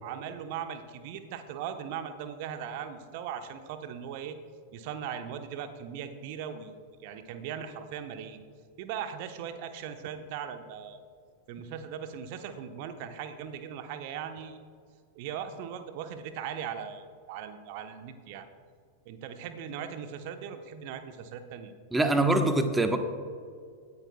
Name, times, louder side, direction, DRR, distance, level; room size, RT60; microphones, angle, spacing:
voice 1, 0.0-4.4 4.7-6.7 7.0-8.4 8.8-11.0 11.5-14.6 15.1-18.4 19.0-21.7, right 8 dB, 50° right, 8 dB, 1.1 m, -39 dB
voice 2, 21.9-23.0, right 2 dB, 10° right, 6 dB, 1.2 m, -24 dB
19.0 x 14.0 x 2.4 m, 2.1 s
figure-of-eight pair, 90°, 0 cm